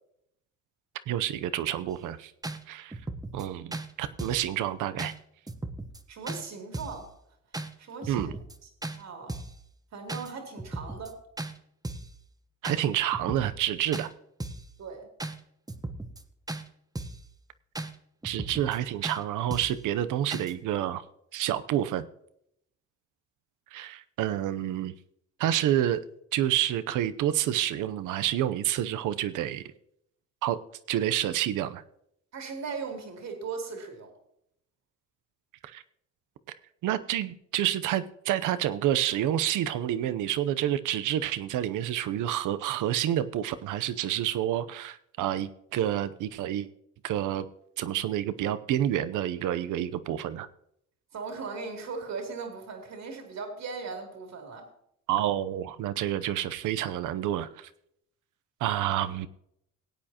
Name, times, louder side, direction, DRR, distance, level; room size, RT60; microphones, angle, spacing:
voice 1, 1.1-2.3 2.7-3.0 3.3-5.1 8.1-8.3 12.6-14.1 18.2-21.0 21.3-22.1 23.7-24.9 25.4-26.0 26.3-29.6 30.4-30.6 30.9-31.8 35.6-35.8 36.8-46.7 47.0-47.5 47.8-50.5 55.1-57.5 58.6-59.3, right 12 dB, 85° right, 14 dB, 0.8 m, -28 dB
sound 1, 1.9-2.0 2.4-2.6 2.9-3.4 3.7-3.9 4.2-4.5 5.0-5.1 5.5-6.0 6.3-6.4 6.7-7.0 7.5-7.7 8.0-8.5 8.8-9.0 9.3-9.6 10.1-10.3 10.6-11.1 11.4-11.5 11.8-12.2 12.6-12.8 13.1-13.7 13.9-14.1 14.4-14.7 15.2-15.3 15.7-16.2 16.5-16.6 17.0-17.3 17.7-17.9 18.2-18.8 19.0-19.2 19.5-19.8 20.3-20.5, right 2 dB, 10° right, 1.1 m, -36 dB
voice 2, 6.1-7.1 7.8-8.3 8.9-9.3 9.9-11.2 14.8-15.1 32.3-34.1 51.1-54.7, right 4 dB, 60° right, 3 dB, 3.0 m, -38 dB
18.0 x 8.7 x 2.9 m, 0.73 s
cardioid pair, 90°, 30 cm